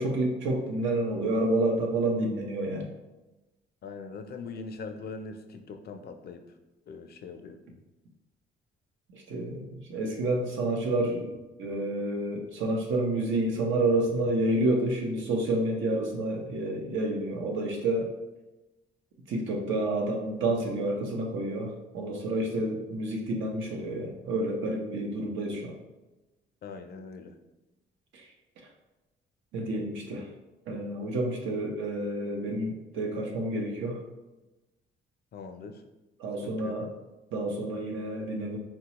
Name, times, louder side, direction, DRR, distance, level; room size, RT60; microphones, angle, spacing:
voice 1, 0.0-2.9 9.1-18.1 19.3-25.7 28.1-28.2 29.5-30.3 30.7-34.0 36.2-36.9 37.3-38.6, right 1 dB, 75° right, 1 dB, 0.7 m, -29 dB
voice 2, 3.8-6.4 6.9-7.6 26.6-27.4 35.3-35.8 36.4-36.8, left 4 dB, 55° left, 7 dB, 0.4 m, -41 dB
4.0 x 2.2 x 2.9 m, 1.0 s
cardioid pair, 90°, 20 cm